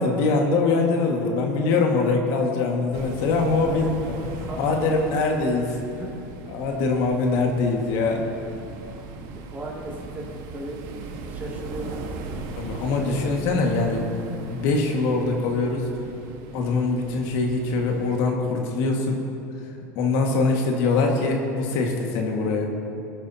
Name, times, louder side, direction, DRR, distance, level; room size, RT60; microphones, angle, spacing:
voice 1, 0.0-3.9 4.4-5.7 6.5-8.3 12.6-14.1 14.4-15.9 16.5-19.2 20.0-22.7, left 3 dB, 60° left, 1 dB, 1.9 m, -23 dB
sound 1, 2.9-18.2, right 3 dB, 55° right, 1.6 m, -39 dB
voice 2, 3.6-4.0 4.4-5.4 6.0-6.2 7.3-7.4 8.9-9.0 9.5-10.8 11.3-11.9 12.2-13.4, right 1 dB, 20° right, -2 dB, 2.7 m, -36 dB
21.5 x 11.5 x 2.9 m, 2.8 s
hypercardioid pair, 110°, 9 cm